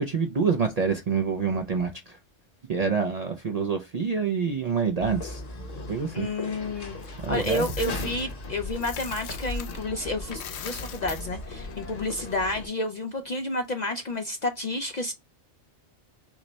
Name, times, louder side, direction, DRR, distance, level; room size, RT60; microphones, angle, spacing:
voice 1, 0.0-2.2 2.7-5.4 5.9-6.3 7.2-7.7 8.0-8.1, right 5 dB, 50° right, 0.4 m, -27 dB
sound 1, 5.0-12.7, left 2 dB, 35° left, 0.9 m, -37 dB
voice 2, 6.1-15.1, left 2 dB, 55° left, 0.5 m, -30 dB
Coin (dropping), 7.0-9.9 10.2-12.5, left 9 dB, 70° left, 0.8 m, -42 dB
6.0 x 2.2 x 4.0 m
omnidirectional pair, 1.2 m